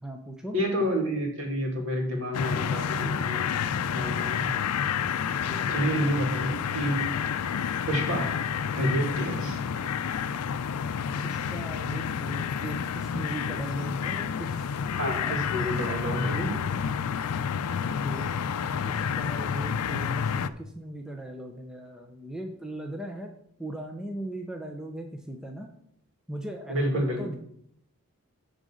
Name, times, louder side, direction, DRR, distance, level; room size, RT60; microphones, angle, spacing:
voice 1, 0.0-0.6 5.5-6.1 8.8-9.1 11.2-14.6 15.2-15.3 17.8-18.3 18.8-23.3 23.6-25.7 26.3-27.4, right 1 dB, 5° right, 2 dB, 0.6 m, -38 dB
voice 2, 0.5-3.5 3.9-4.5 5.7-7.1 7.9-8.3 8.8-9.6 15.0-16.5 26.7-27.4, equal, 60° right, 0 dB, 2.6 m, -29 dB
sound 1, 2.3-20.5, left 7 dB, 85° left, 0.4 m, -29 dB
10.0 x 4.0 x 6.3 m, 0.71 s
head